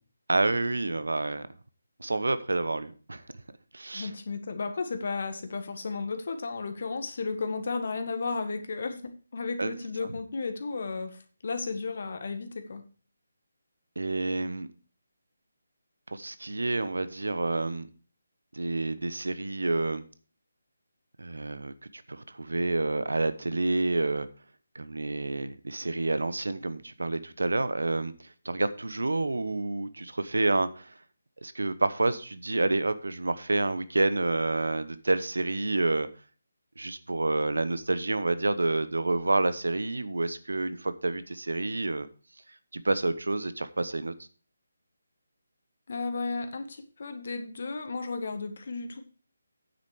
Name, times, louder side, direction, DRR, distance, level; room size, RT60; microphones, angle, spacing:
voice 1, 0.3-1.4 2.0-3.2 3.7-4.1 9.6-9.7 14.0-14.7 16.1-17.9 18.5-20.0 21.2-24.3 24.7-30.9 31.4-36.1 36.8-42.1 42.7-44.1, right 2 dB, 75° right, 1.0 m, -28 dB
voice 2, 3.9-9.0 9.3-12.8 45.9-49.0, left 4 dB, 50° left, 1.7 m, -34 dB
9.4 x 7.5 x 4.9 m
figure-of-eight pair, 150°, 0 cm